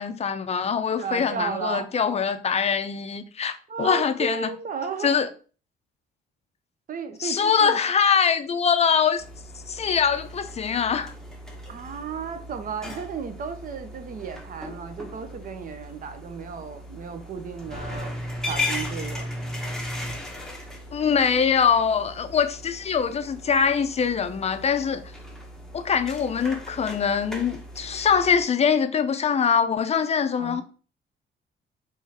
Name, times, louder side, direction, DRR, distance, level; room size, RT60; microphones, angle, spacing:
voice 1, 0.0-4.5 5.0-5.3 7.2-9.2 9.7-11.1 20.9-25.0 25.7-30.6, left 6 dB, 30° left, 0.5 m, -23 dB
voice 2, 1.0-1.9 3.7-5.2 6.9-7.8 11.7-18.1 18.5-19.3 30.4-30.6, right 5 dB, 45° right, 0.6 m, -34 dB
sound 1, 9.2-28.4, left 1 dB, 5° left, 0.8 m, -37 dB
3.6 x 3.1 x 2.8 m
cardioid pair, 90°, 20 cm